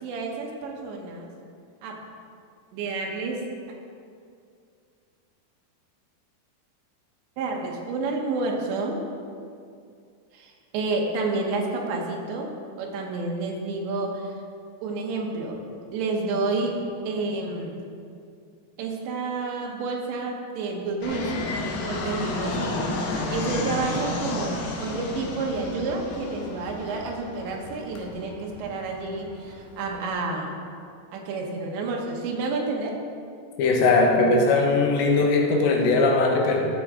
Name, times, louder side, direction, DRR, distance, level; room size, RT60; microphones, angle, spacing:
voice 1, 0.0-1.3 1.8-2.0 2.7-3.4 7.4-9.0 10.3-12.5 12.8-14.3 14.8-15.6 15.9-16.7 17.1-17.8 18.8-21.5 21.9-22.8 23.3-30.6 31.1-32.9, right 3 dB, 85° right, 0 dB, 3.4 m, -29 dB
Fixed-wing aircraft airplane, 21.0-30.0, left 2 dB, 70° left, 2.5 m, -32 dB
voice 2, 33.6-36.7, left 3 dB, 85° left, 1 dB, 3.3 m, -20 dB
12.5 x 8.1 x 3.7 m, 2.4 s
omnidirectional pair, 5.0 m